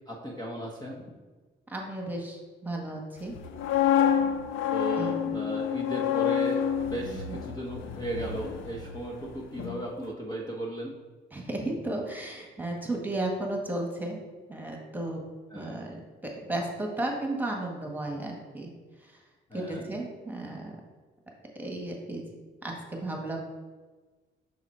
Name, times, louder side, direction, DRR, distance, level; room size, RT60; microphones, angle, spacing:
voice 1, 0.1-1.0 4.7-10.9 15.5-15.8 19.5-19.8, right 1 dB, 20° left, -2 dB, 1.0 m, -36 dB
voice 2, 1.7-3.3 4.9-5.4 7.1-7.4 11.3-14.2 14.5-15.2 15.5-18.7 19.5-20.8 21.5-22.2 22.6-23.4, right 2 dB, 10° right, 0 dB, 1.4 m, -34 dB
sound 1, 3.3-9.3 9.6-9.8, left 9 dB, 80° left, 0.5 m, -28 dB
6.1 x 4.1 x 4.4 m, 1.3 s
cardioid pair, 90°, 20 cm